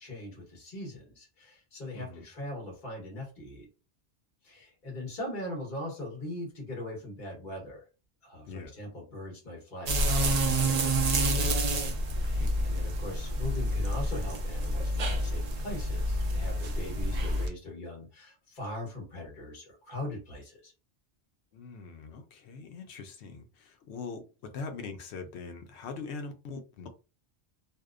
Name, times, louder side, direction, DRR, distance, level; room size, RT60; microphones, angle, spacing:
voice 1, 0.0-3.7 4.4-7.8 8.2-11.7 12.2-20.7, left 1 dB, 45° left, 1.2 m, -41 dB
voice 2, 1.9-2.3 8.5-8.7 12.4-12.7 21.5-26.9, left 4 dB, 75° left, 0.8 m, -42 dB
sound 1, 9.9-17.5, right 1 dB, 55° right, 0.5 m, -28 dB
2.7 x 2.0 x 2.3 m
omnidirectional pair, 1.1 m